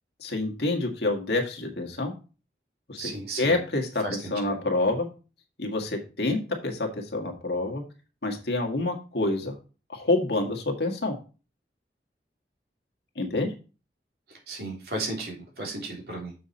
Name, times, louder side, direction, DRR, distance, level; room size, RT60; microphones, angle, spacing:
voice 1, 0.2-2.1 2.9-3.1 3.4-4.0 4.3-5.1 5.6-7.8 8.2-9.5 9.9-11.1 13.2-13.5, left 2 dB, 70° left, 3 dB, 1.8 m, -27 dB
voice 2, 3.0-3.6 4.0-4.2 4.5-4.6 14.3-16.3, right 2 dB, 60° right, -1 dB, 3.2 m, -34 dB
7.1 x 6.2 x 4.2 m, 0.34 s
head